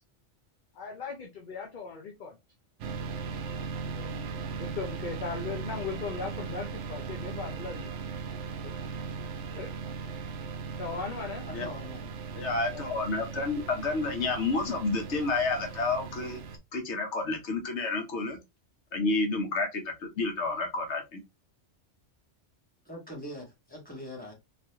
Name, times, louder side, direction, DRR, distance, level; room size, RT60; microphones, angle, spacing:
voice 1, 0.8-2.4 3.9-7.9 8.6-8.7 9.5-9.7 10.8-11.4 12.7-12.8, left 5 dB, 50° left, 0.7 m, -38 dB
sound 1, 2.8-16.6, right 5 dB, 90° right, 0.9 m, -38 dB
voice 2, 11.5-12.1 22.8-24.3, left 1 dB, 5° left, 1.6 m, -42 dB
voice 3, 12.4-16.4 16.7-18.4 18.9-21.2, left 3 dB, 75° left, 1.1 m, -30 dB
4.0 x 2.5 x 2.7 m
omnidirectional pair, 1.2 m